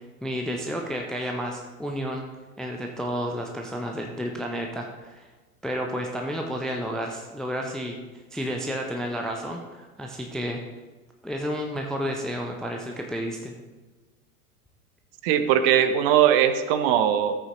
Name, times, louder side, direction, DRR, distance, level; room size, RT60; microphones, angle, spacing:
voice 1, 0.2-2.3 2.6-5.2 5.6-8.0 8.3-10.6 11.2-13.5, equal, ahead, 2 dB, 0.5 m, -31 dB
voice 2, 15.2-17.4, right 10 dB, 40° right, 10 dB, 0.8 m, -20 dB
14.0 x 8.5 x 2.9 m, 1.2 s
figure-of-eight pair, 90°, 45 cm